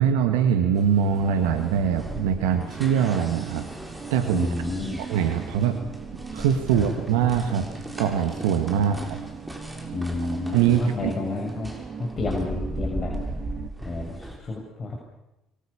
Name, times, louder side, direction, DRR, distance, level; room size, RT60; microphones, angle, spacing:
voice 1, 0.0-3.7 4.1-4.5 5.0-5.8 6.3-7.7 8.0-9.2 10.5-11.1, right 8 dB, 75° right, 6 dB, 2.0 m, -23 dB
sound 1, 0.7-14.4, right 1 dB, 10° right, 7.0 m, -38 dB
sound 2, 1.1-13.7, right 5 dB, 45° right, 3.5 m, -39 dB
voice 2, 4.3-5.0 6.7-6.9 8.7-9.1 9.9-11.7 12.0-13.2 13.8-14.9, left 3 dB, 35° left, -1 dB, 7.2 m, -30 dB
28.5 x 23.5 x 7.2 m, 0.91 s
hypercardioid pair, 55°, 0 cm